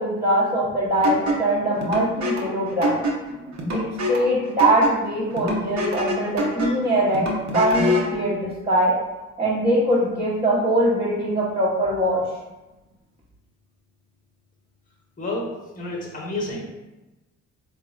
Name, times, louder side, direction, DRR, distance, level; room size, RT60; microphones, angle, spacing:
voice 1, 0.0-3.0 3.7-7.2 7.5-8.9 9.4-12.2, right 1 dB, 15° right, -7 dB, 1.0 m, -22 dB
sound 1, 1.0-8.2, equal, 45° right, 1.0 m, -26 dB
voice 2, 15.2-16.7, left 2 dB, 20° left, -2 dB, 1.1 m, -30 dB
3.9 x 3.8 x 2.5 m, 1.0 s
figure-of-eight pair, 45°, 38 cm